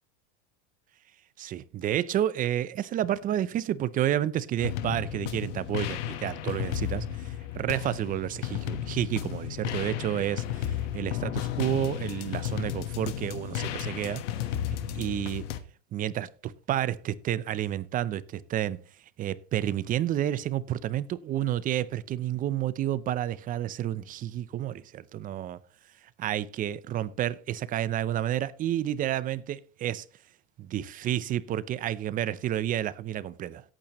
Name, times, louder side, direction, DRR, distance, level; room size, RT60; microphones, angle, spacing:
voice 1, 1.4-7.1 7.5-10.7 10.9-14.2 14.9-15.4 15.9-18.8 19.2-25.6 26.2-30.0 30.6-33.6, right 12 dB, 25° right, 0.5 m, -30 dB
sound 1, 4.6-15.6, left 11 dB, 70° left, 1.3 m, -33 dB
16.5 x 8.9 x 3.0 m
supercardioid pair, 140°, 37 cm